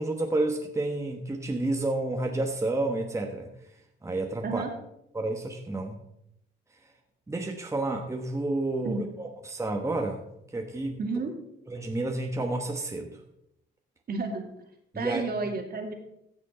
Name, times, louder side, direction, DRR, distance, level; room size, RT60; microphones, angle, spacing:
voice 1, 0.0-3.5 4.0-4.6 5.1-6.0 7.3-10.2 10.5-11.0 11.7-13.2 14.9-15.2, right 2 dB, 15° right, 2 dB, 1.3 m, -30 dB
voice 2, 11.0-11.3 14.1-14.5 14.9-15.9, right 4 dB, 50° right, 3 dB, 2.2 m, -31 dB
15.5 x 6.2 x 4.4 m, 0.79 s
cardioid pair, 90°, 20 cm